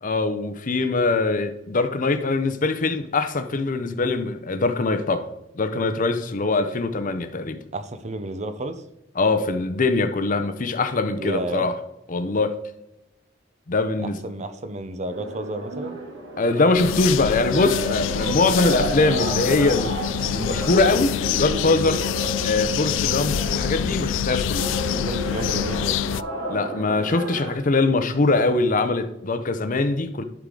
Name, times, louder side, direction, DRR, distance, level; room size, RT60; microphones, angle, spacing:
voice 1, 0.0-5.3 5.6-7.6 9.2-11.7 12.1-12.5 13.7-14.2 16.4-20.0 20.3-22.0 22.4-24.7 26.5-30.2, left 3 dB, 45° left, 0.7 m, -22 dB
voice 2, 7.7-8.8 11.2-11.7 14.0-16.0 24.9-26.0, right 2 dB, 35° right, 0.7 m, -31 dB
sound 1, 15.1-27.5, right 1 dB, 80° right, 2.8 m, -32 dB
sound 2, 16.7-26.2, left 9 dB, 75° left, 0.3 m, -26 dB
11.5 x 4.8 x 3.8 m
head